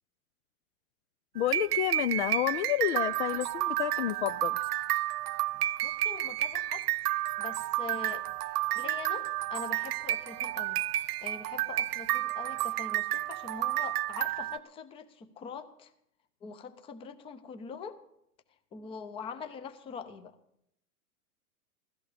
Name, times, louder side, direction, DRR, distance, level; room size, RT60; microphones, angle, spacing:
voice 1, 1.3-4.6, left 13 dB, 50° left, 15 dB, 0.5 m, -30 dB
sound 1, 1.4-14.6, right 15 dB, 85° right, 0.5 m, -31 dB
voice 2, 5.8-6.9 7.4-8.3 8.7-15.9 16.4-18.0 18.7-20.3, left 5 dB, 10° left, 10 dB, 0.6 m, -43 dB
16.0 x 13.5 x 5.0 m, 0.75 s
hypercardioid pair, 135°, 45 cm